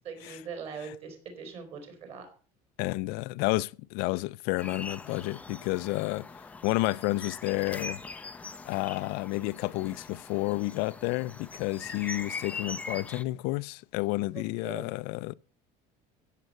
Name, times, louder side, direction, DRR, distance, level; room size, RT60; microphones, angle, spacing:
voice 1, 0.0-2.3 14.3-14.9, right 5 dB, 40° right, 4.1 m, -41 dB
voice 2, 2.8-6.3 6.6-8.0 8.7-15.3, left 21 dB, 75° left, 0.5 m, -30 dB
sound 1, 4.6-13.2, left 3 dB, 10° left, 0.5 m, -42 dB
15.5 x 7.5 x 6.6 m
cardioid pair, 180°, 16 cm